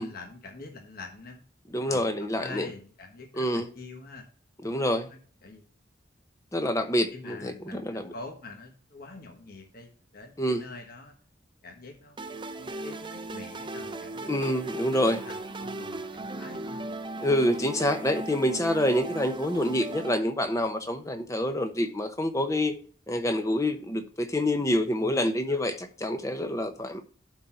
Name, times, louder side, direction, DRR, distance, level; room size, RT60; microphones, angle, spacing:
voice 1, 0.0-1.4 1.8-2.1 2.4-4.3 5.4-5.7 7.1-11.1 11.6-12.2 12.6-14.3 15.2-16.9 20.7-20.9 25.0-25.2 25.5-25.6, left 3 dB, 50° left, 1.3 m, -45 dB
voice 2, 1.7-2.7 3.3-3.7 4.6-5.1 6.5-8.1 10.4-10.6 14.3-15.2 17.2-22.7 23.1-27.0, left 1 dB, 15° left, 1.0 m, -27 dB
sound 1, 12.2-20.2, right 2 dB, 25° right, 0.7 m, -37 dB
12.0 x 4.0 x 4.4 m
head